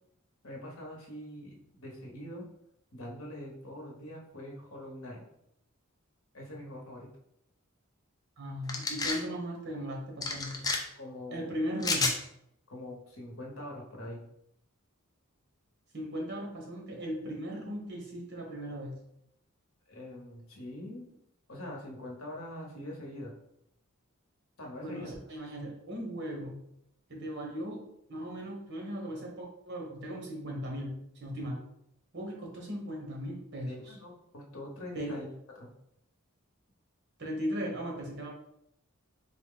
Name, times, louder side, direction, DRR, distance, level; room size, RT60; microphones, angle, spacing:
voice 1, 0.4-2.5 2.9-5.2 6.3-7.1 10.9-11.5 12.7-14.2 19.9-21.1 21.5-23.3 24.6-25.1 33.7-35.3 35.6-35.7, left 1 dB, 75° left, -1 dB, 1.0 m, -43 dB
voice 2, 8.4-10.7 11.3-12.1 15.9-18.9 24.8-26.6 27.1-27.8 28.1-30.9 31.2-31.6 32.1-34.0 34.9-35.2 37.2-38.3, equal, 55° right, -1 dB, 1.1 m, -37 dB
sound 1, 8.7-9.2 10.2-10.8 11.8-12.2, left 3 dB, 15° left, 0.4 m, -30 dB
3.8 x 2.3 x 3.7 m, 0.77 s
head